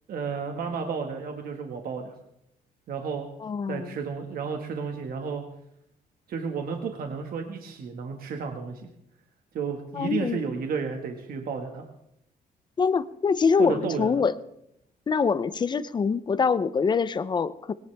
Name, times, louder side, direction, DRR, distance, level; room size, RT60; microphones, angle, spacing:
voice 1, 0.1-2.1 2.9-3.3 3.7-5.4 6.3-8.8 9.5-11.9 13.6-14.2, right 5 dB, 65° right, 3 dB, 1.8 m, -32 dB
voice 2, 3.4-3.9 9.9-10.4 12.8-14.3 15.1-17.7, left 5 dB, 25° left, 15 dB, 0.6 m, -24 dB
21.0 x 18.5 x 3.5 m, 0.78 s
cardioid pair, 175°, 16 cm